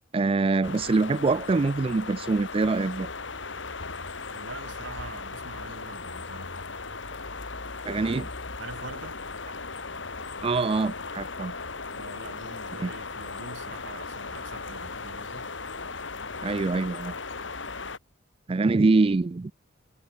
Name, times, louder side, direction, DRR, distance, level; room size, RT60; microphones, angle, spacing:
voice 1, 0.1-3.1 7.8-8.3 10.4-11.5 12.8-12.9 16.4-17.1 18.5-19.5, right 3 dB, 30° right, 0.4 m, -24 dB
sound 1, 0.6-18.0, left 4 dB, 75° left, 2.9 m, -37 dB
voice 2, 4.3-6.5 8.6-9.2 11.9-15.5, right 2 dB, 85° right, 5.0 m, -44 dB
head